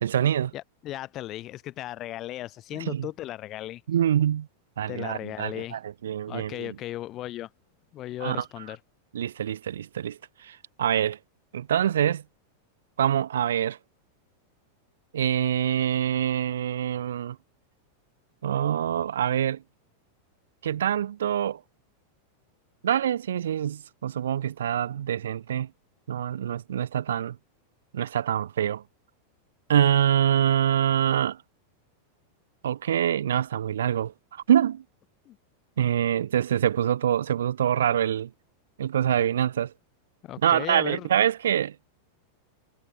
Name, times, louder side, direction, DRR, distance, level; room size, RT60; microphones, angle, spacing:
voice 1, 0.0-0.5 2.9-3.1 3.9-4.5 4.8-6.7 8.2-8.4 9.1-11.2 11.5-12.2 13.0-13.8 15.1-17.4 18.4-19.6 20.6-21.6 22.8-25.7 26.1-27.4 27.9-28.8 29.7-31.4 32.6-34.8 35.8-38.3 38.8-39.7 40.4-41.8, right 10 dB, 65° right, 0.4 m, -25 dB
voice 2, 0.5-3.8 4.9-5.8 6.3-7.5 7.9-8.8 35.3-35.4 40.2-41.1, left 14 dB, 35° left, 2.2 m, -36 dB
figure-of-eight pair, 90°, 0 cm